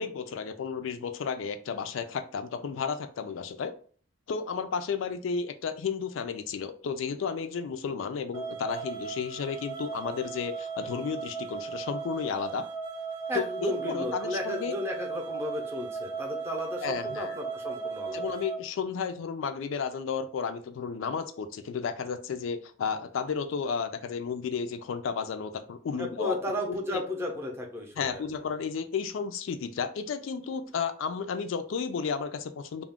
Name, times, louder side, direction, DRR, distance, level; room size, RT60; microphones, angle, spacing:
voice 1, 0.0-3.8 4.3-12.6 13.3-14.7 16.8-17.4 18.1-26.4 26.7-27.0 28.0-32.8, left 6 dB, 85° left, 8 dB, 0.3 m, -33 dB
sound 1, 8.3-18.6, right 5 dB, 85° right, 0.7 m, -37 dB
voice 2, 13.3-18.2 26.0-28.2, left 1 dB, 15° right, 0 dB, 0.5 m, -34 dB
2.3 x 2.1 x 3.5 m, 0.43 s
head